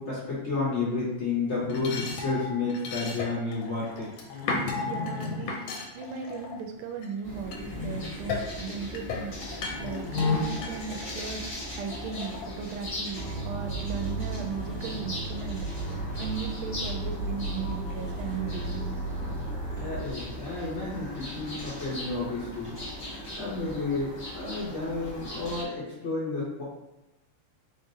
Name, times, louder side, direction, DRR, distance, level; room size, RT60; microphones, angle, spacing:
voice 1, 0.0-4.1 19.8-22.8 23.4-26.6, left 3 dB, 55° left, -6 dB, 0.8 m, -31 dB
sound 1, 1.4-7.1 7.5-13.0, left 4 dB, 75° left, 1.4 m, -34 dB
voice 2, 4.8-9.3 9.8-15.6 16.2-18.9, right 6 dB, 85° right, 4 dB, 1.5 m, -37 dB
sound 2, 7.2-25.6, equal, 30° left, 1.0 m, -39 dB
sound 3, 13.1-20.1, right 2 dB, 65° right, 1.0 m, -34 dB
3.7 x 3.5 x 2.7 m, 0.97 s
omnidirectional pair, 2.4 m